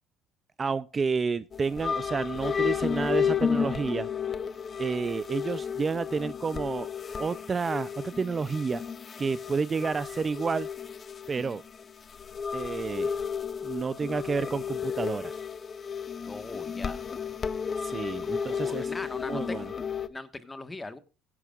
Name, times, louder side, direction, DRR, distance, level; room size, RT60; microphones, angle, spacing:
voice 1, 0.6-4.1 4.8-6.9 7.2-8.8 9.2-10.7 11.3-11.6 12.5-13.2 13.6-15.4 17.8-18.9 19.3-19.6, right 5 dB, 30° right, 0.5 m, -30 dB
sound 1, 1.5-20.1, left 6 dB, 35° left, 0.8 m, -33 dB
voice 2, 16.3-17.0 18.5-19.7 20.1-21.0, left 2 dB, 15° left, 1.5 m, -40 dB
16.5 x 11.0 x 2.5 m
supercardioid pair, 95°, 0 cm